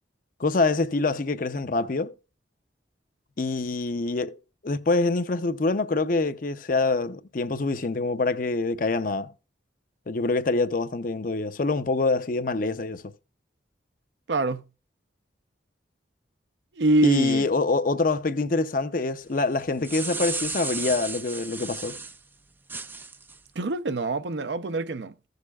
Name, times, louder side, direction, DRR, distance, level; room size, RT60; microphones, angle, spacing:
voice 1, 0.4-2.1 3.4-4.4 4.6-9.3 10.1-13.0 17.0-22.0, left 3 dB, 45° left, 0.6 m, -25 dB
voice 2, 14.3-14.6 16.8-17.5 23.6-25.3, right 2 dB, 70° right, 0.6 m, -25 dB
sound 1, 19.6-22.2 22.7-23.4, right 4 dB, 10° right, 0.3 m, -33 dB
15.5 x 6.6 x 2.3 m
head